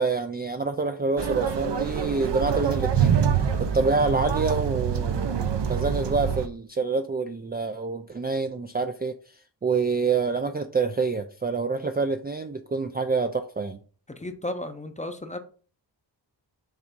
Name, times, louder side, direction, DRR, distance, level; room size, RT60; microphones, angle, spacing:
voice 1, 0.0-3.2 3.6-9.2 9.6-13.8, right 4 dB, 25° right, 0.3 m, -27 dB
sound 1, 1.2-6.5, right 7 dB, 65° right, 0.8 m, -25 dB
voice 2, 14.2-15.4, left 1 dB, 15° left, 0.6 m, -34 dB
7.1 x 2.6 x 5.1 m
wide cardioid pair, 110°, 45 cm